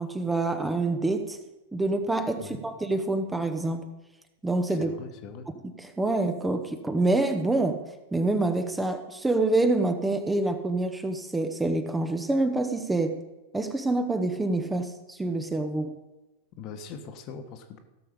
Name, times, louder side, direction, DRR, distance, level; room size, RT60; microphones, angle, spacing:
voice 1, 0.0-1.4 1.7-3.9 4.4-4.9 5.6-7.8 8.1-13.2 13.5-16.0, right 2 dB, 10° right, 7 dB, 0.9 m, -26 dB
voice 2, 2.4-2.7 4.7-5.5 16.6-17.8, left 5 dB, 40° left, 7 dB, 1.3 m, -41 dB
16.5 x 7.0 x 5.1 m, 1.1 s
figure-of-eight pair, 90°, 0 cm